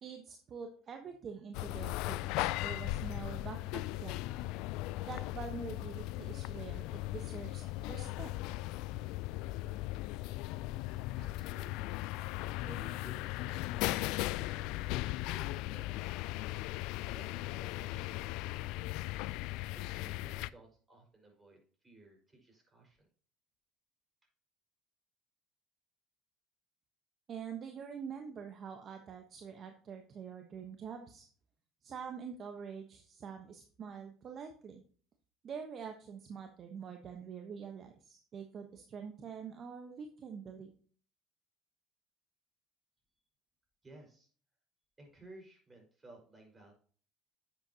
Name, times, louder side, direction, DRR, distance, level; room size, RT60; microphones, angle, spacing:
voice 1, 0.0-4.2 5.1-8.3 27.3-31.3 31.8-34.8 35.4-40.7, right 6 dB, 45° right, 5 dB, 1.2 m, -45 dB
sound 1, 1.5-20.5, left 18 dB, 75° left, 0.3 m, -38 dB
voice 2, 11.1-12.0 12.6-14.5 15.1-16.3 17.1-19.0 19.7-23.1 43.8-44.3 45.0-46.7, right 2 dB, 20° right, 2 dB, 5.2 m, -56 dB
10.5 x 7.8 x 2.9 m, 0.43 s
supercardioid pair, 80°, 0 cm